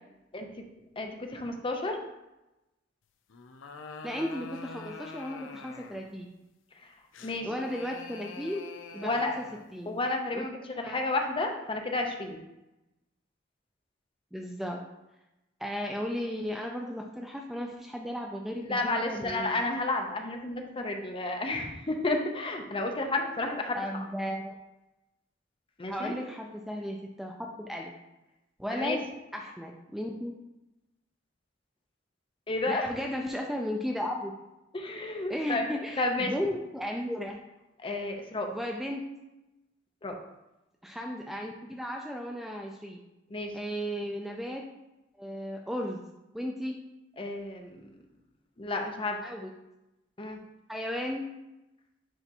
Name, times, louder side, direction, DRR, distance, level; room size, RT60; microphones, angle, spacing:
voice 1, 0.3-0.7 1.0-2.0 7.2-7.5 9.0-9.3 9.9-12.4 18.6-24.1 25.8-26.1 28.7-29.0 32.5-32.9 34.7-35.7 36.0-36.3 37.8-38.5 40.0-40.2 43.3-43.5 47.2-47.9 48.6-49.2 50.2-50.4, left 2 dB, 30° left, 3 dB, 0.7 m, -31 dB
sound 1, 3.3-6.1 7.1-9.7, left 4 dB, 80° left, 0.5 m, -45 dB
voice 2, 4.0-6.3 7.4-8.6 8.9-9.4 9.7-9.9 10.3-10.5 10.8-11.0 14.3-14.8 15.6-19.6 23.7-24.6 25.9-27.9 28.6-29.0 29.3-30.3 32.7-34.3 35.3-37.4 38.5-39.1 40.8-43.0 43.5-44.6 45.2-46.0 46.3-46.8 49.2-49.5 50.7-51.3, equal, ahead, 1 dB, 0.4 m, -35 dB
9.8 x 3.4 x 2.9 m, 0.96 s
head